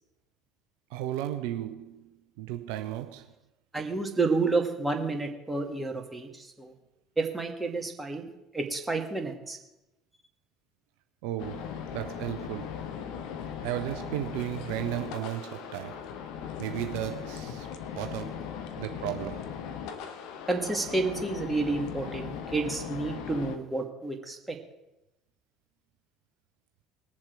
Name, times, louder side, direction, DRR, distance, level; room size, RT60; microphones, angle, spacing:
voice 1, 0.9-3.3 11.2-12.8 13.6-16.1 16.6-17.7 18.0-18.4 18.8-19.5, right 13 dB, 65° right, 0.6 m, -35 dB
voice 2, 3.7-6.7 7.2-8.2 8.5-9.6 20.5-24.6, right 3 dB, 15° right, 2.2 m, -30 dB
sound 1, 11.4-23.6, left 8 dB, 65° left, 1.0 m, -39 dB
20.5 x 7.3 x 4.6 m
figure-of-eight pair, 60°, 0 cm